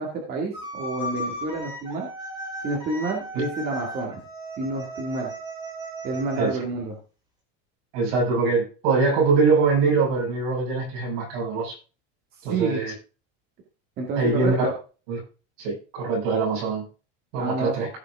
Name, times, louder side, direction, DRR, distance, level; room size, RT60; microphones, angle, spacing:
voice 1, 0.0-2.1 2.6-4.2 4.6-5.3 6.0-7.0 12.5-12.8 14.0-14.7 17.4-17.7, right 3 dB, 30° right, 0 dB, 2.3 m, -29 dB
sound 1, 0.5-6.4, equal, 15° right, 3.2 m, -36 dB
voice 2, 7.9-11.8 12.4-12.9 14.2-14.7 15.1-15.2 15.6-16.9 17.3-17.9, right 4 dB, 70° right, -2 dB, 7.0 m, -23 dB
16.0 x 5.6 x 3.6 m, 0.34 s
cardioid pair, 180°, 31 cm